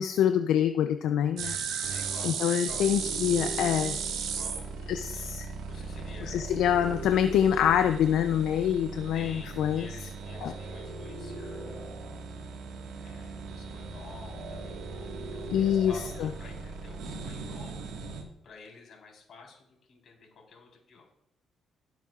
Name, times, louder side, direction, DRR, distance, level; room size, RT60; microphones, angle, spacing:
voice 1, 0.0-1.9 2.2-4.0 4.9-5.5 6.3-9.9 10.4-10.5 15.5-15.9, left 9 dB, 85° left, 8 dB, 0.4 m, -26 dB
sound 1, 1.4-18.2, right 4 dB, 85° right, 1.6 m, -37 dB
voice 2, 1.9-2.8 4.2-5.3 5.7-6.4 9.1-12.0 13.0-17.8 18.4-21.1, left 4 dB, 60° left, 0 dB, 3.8 m, -50 dB
16.0 x 7.4 x 2.4 m, 0.84 s
cardioid pair, 90°, 0 cm